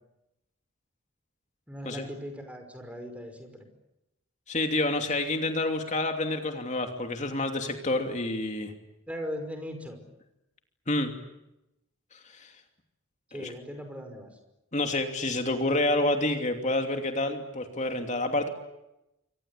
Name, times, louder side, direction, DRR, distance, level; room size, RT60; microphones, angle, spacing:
voice 1, 1.7-3.7 9.1-10.0 13.3-14.3, equal, 5° right, 6 dB, 5.4 m, -39 dB
voice 2, 4.5-8.7 10.9-11.1 12.1-12.5 13.3-13.5 14.7-18.5, left 2 dB, 35° left, 5 dB, 2.8 m, -28 dB
28.5 x 25.0 x 8.5 m, 0.90 s
head